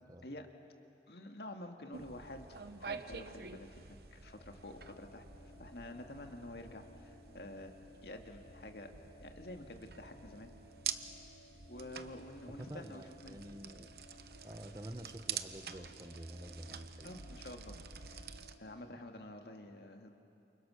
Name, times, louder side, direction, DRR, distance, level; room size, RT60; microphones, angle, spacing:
voice 1, 1.1-5.3 5.6-7.7 8.0-8.9 9.2-10.5 11.7-13.4 17.0-17.8 18.1-18.3 18.6-20.2, left 1 dB, 70° left, 4 dB, 1.9 m, -49 dB
sound 1, 1.9-18.5, right 7 dB, 60° right, 1.0 m, -48 dB
sound 2, 4.2-18.8, left 1 dB, 50° left, 4.8 m, -60 dB
voice 2, 12.6-14.0 14.4-17.4, right 1 dB, 20° right, 9 dB, 0.8 m, -48 dB
29.5 x 28.0 x 6.4 m, 2.8 s
head